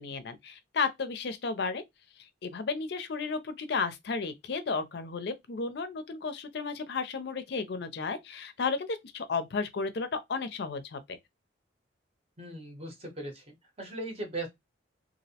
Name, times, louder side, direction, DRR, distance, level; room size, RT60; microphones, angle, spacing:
voice 1, 0.0-1.8 2.4-11.2, left 4 dB, 55° left, 0.4 m, -33 dB
voice 2, 12.4-14.5, right 2 dB, 30° right, 0.7 m, -39 dB
2.5 x 2.0 x 2.7 m
head